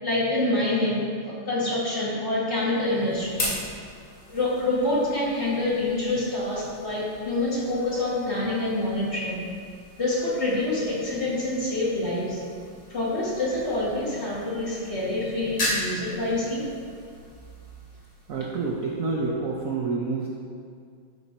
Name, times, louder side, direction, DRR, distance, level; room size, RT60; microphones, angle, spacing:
voice 1, 0.0-3.6 4.3-9.4 10.0-12.4 12.9-16.7, left 2 dB, 35° left, -7 dB, 2.0 m, -26 dB
sound 1, 2.5-19.5, left 1 dB, 85° left, 3.4 m, -38 dB
voice 2, 18.3-20.3, right 4 dB, 60° right, -3 dB, 0.9 m, -28 dB
12.0 x 4.5 x 4.3 m, 2.2 s
omnidirectional pair, 2.2 m